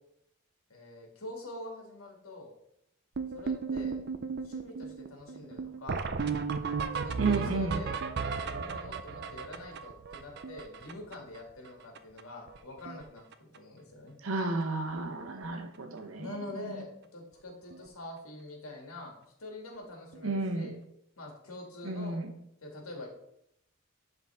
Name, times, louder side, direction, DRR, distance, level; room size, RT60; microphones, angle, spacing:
voice 1, 0.7-2.5 3.3-4.0 4.4-6.1 7.0-8.0 8.3-14.2 16.2-20.8 21.2-22.2 22.6-23.1, left 2 dB, 80° left, 0 dB, 2.2 m, -45 dB
sound 1, 3.1-11.4 11.6-11.7 11.9-12.2 12.5-13.0 13.3-13.6 14.4-14.5 14.9-15.0 15.3-15.4 17.7-17.8 20.1-20.2, right 5 dB, 50° right, 0.5 m, -35 dB
voice 2, 7.2-7.8 14.2-16.8 20.2-20.7 21.8-22.3, right 3 dB, 70° right, 6 dB, 1.0 m, -32 dB
11.0 x 4.1 x 3.6 m, 0.77 s
head